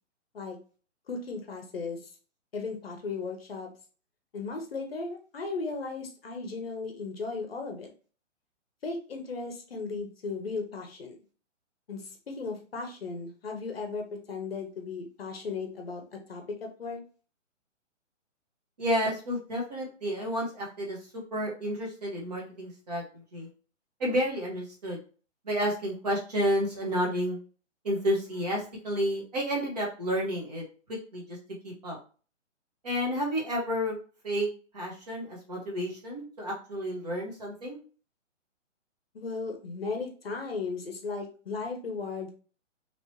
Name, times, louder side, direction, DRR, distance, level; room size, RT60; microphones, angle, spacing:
voice 1, 1.1-2.0 2.5-3.7 4.3-7.9 8.8-11.2 11.9-17.0 39.1-42.3, left 4 dB, 50° left, 3 dB, 0.7 m, -36 dB
voice 2, 18.8-23.5 24.0-25.0 25.4-27.4 27.8-31.4 31.6-32.0 32.8-34.0 34.2-34.5 34.7-37.8, equal, 35° right, -2 dB, 1.1 m, -31 dB
3.1 x 2.8 x 2.9 m, 0.38 s
hypercardioid pair, 175°, 38 cm